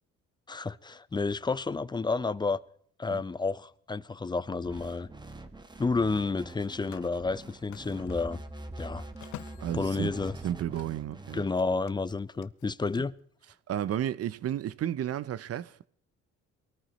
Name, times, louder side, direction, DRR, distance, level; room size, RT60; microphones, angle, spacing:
voice 1, 0.5-2.6 3.0-5.1 5.8-8.4 8.8-9.0 9.7-10.4 11.3-13.1, left 4 dB, 15° left, 0.4 m, -30 dB
Telephone, 4.1-4.4 6.3-11.2 11.5-13.0, left 14 dB, 80° left, 0.6 m, -51 dB
sound 1, 4.6-11.5, right 2 dB, 15° right, 1.2 m, -44 dB
voice 2, 9.6-10.1 10.4-11.4 13.7-15.9, right 11 dB, 55° right, 0.5 m, -32 dB
22.5 x 14.0 x 3.1 m
cardioid pair, 90°, 30 cm